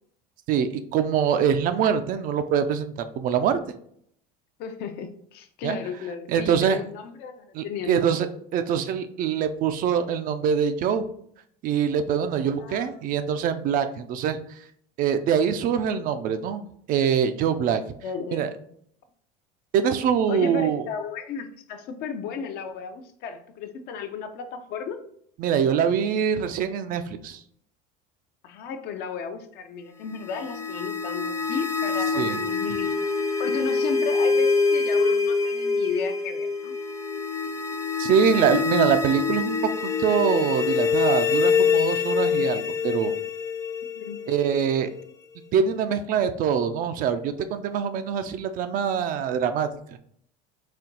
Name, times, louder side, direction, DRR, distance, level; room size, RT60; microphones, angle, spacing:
voice 1, 0.5-3.6 5.6-5.8 6.3-6.8 7.5-11.1 11.6-14.4 15.0-17.8 18.3-18.5 19.7-20.8 25.4-27.4 32.2-32.4 38.0-43.1 44.3-44.9 45.5-49.7, right 7 dB, 50° right, 9 dB, 0.4 m, -24 dB
voice 2, 4.6-8.2 12.4-13.0 18.0-18.5 20.3-25.0 28.4-32.9 33.4-36.7 43.9-44.2, left 6 dB, 60° left, 7 dB, 0.6 m, -34 dB
sound 1, 30.1-45.0, left 5 dB, 15° left, 0.5 m, -25 dB
4.2 x 2.2 x 3.9 m, 0.65 s
supercardioid pair, 120°, 18 cm